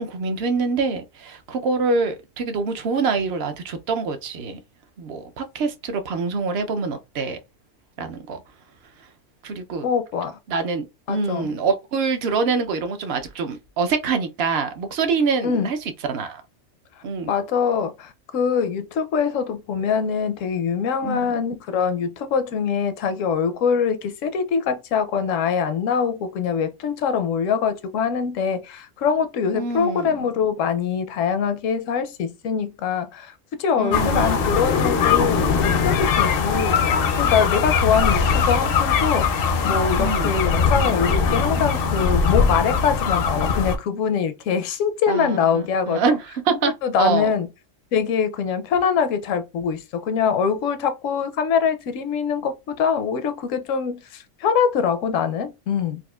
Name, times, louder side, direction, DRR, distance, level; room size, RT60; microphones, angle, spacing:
voice 1, 0.0-4.6 5.0-7.4 8.0-8.4 9.4-9.9 10.5-15.8 16.0-16.4 17.0-17.3 21.0-21.4 29.5-30.3 33.8-34.6 40.0-40.3 45.1-47.3, right 4 dB, 65° right, 0.7 m, -25 dB
voice 2, 9.8-10.4 11.1-11.5 15.4-15.7 17.3-33.3 33.6-36.8 37.2-46.1 46.5-47.5 47.9-56.0, left 6 dB, 80° left, 1.0 m, -23 dB
sound 1, 33.9-43.8, left 6 dB, 60° left, 0.6 m, -21 dB
4.1 x 2.4 x 2.3 m
omnidirectional pair, 1.3 m